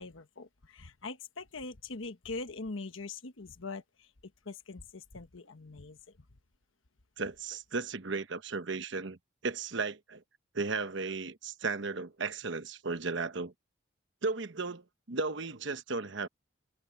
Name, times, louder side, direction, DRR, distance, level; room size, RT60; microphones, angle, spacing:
voice 1, 0.0-4.1 4.4-6.0, left 3 dB, 80° left, 1.2 m, -42 dB
voice 2, 7.2-9.2 9.4-10.2 10.5-13.5 14.2-16.3, right 4 dB, 65° right, 1.0 m, -35 dB
head